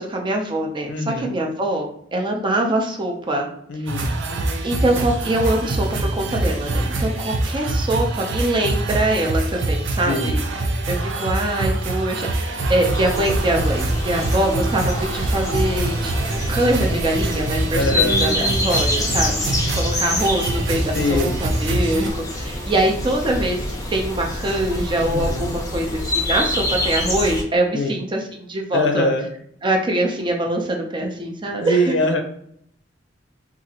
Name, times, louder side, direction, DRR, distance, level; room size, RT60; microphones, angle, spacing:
voice 1, 0.0-3.5 3.8-4.2 4.6-10.4 10.9-23.6 23.9-29.1 29.6-31.9, right 1 dB, 25° right, 2 dB, 0.5 m, -23 dB
voice 2, 0.9-1.3 3.7-4.1 10.1-10.4 17.7-18.2 20.9-21.4 25.1-25.5 27.7-27.9 28.7-29.3 31.6-32.2, left 1 dB, 75° left, 5 dB, 0.5 m, -22 dB
sound 1, 3.9-22.1, right 2 dB, 80° right, 0.5 m, -24 dB
sound 2, 12.9-27.4, left 1 dB, 20° left, 0.6 m, -26 dB
2.8 x 2.5 x 2.7 m, 0.68 s
head